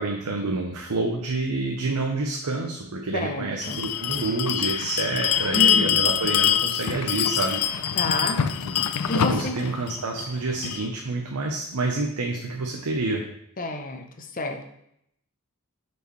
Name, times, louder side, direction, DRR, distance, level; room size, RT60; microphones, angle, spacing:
voice 1, 0.0-7.8 8.6-8.8 9.1-13.2, right 2 dB, 90° right, 1 dB, 0.8 m, -28 dB
voice 2, 3.1-3.8 5.5-6.0 7.9-8.4 9.1-9.5 13.6-14.6, left 2 dB, 40° left, 5 dB, 0.7 m, -29 dB
Bell, 3.6-10.9, left 9 dB, 85° left, 0.4 m, -25 dB
8.1 x 4.6 x 3.2 m, 0.74 s
head